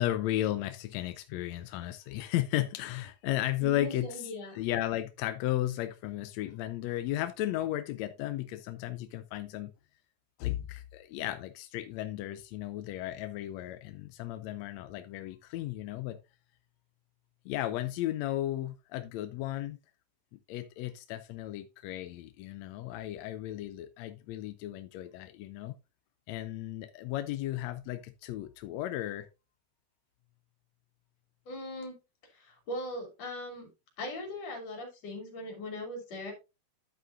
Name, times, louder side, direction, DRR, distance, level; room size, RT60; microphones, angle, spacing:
voice 1, 0.0-4.2 4.6-9.7 10.4-16.2 17.5-19.8 20.5-25.7 26.3-29.3, left 14 dB, 80° left, 1.7 m, -34 dB
voice 2, 3.6-4.6 31.5-32.0 32.3-33.7 34.0-36.3, left 1 dB, 55° left, 3.9 m, -40 dB
9.9 x 7.9 x 2.5 m
omnidirectional pair, 3.5 m